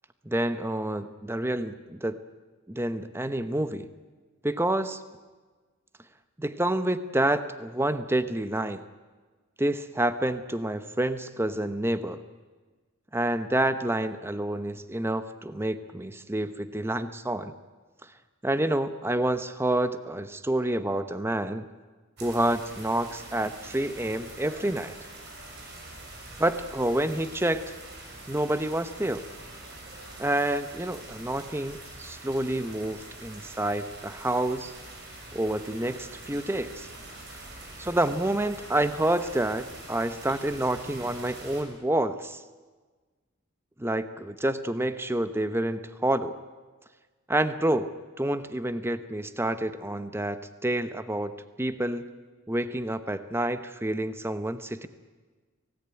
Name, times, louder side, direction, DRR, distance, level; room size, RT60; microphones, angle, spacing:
voice 1, 0.3-2.2 2.7-3.9 4.4-5.0 6.4-8.8 9.6-12.2 13.1-17.5 18.4-21.7 22.2-25.0 26.4-27.7 28.3-29.2 30.2-34.7 35.3-36.9 37.8-42.4 43.8-46.4 47.3-52.1 52.5-54.9, right 1 dB, 10° right, 11 dB, 0.9 m, -28 dB
sound 1, 22.2-41.6, right 2 dB, 55° right, 6.2 m, -44 dB
24.0 x 18.0 x 9.9 m, 1.3 s
head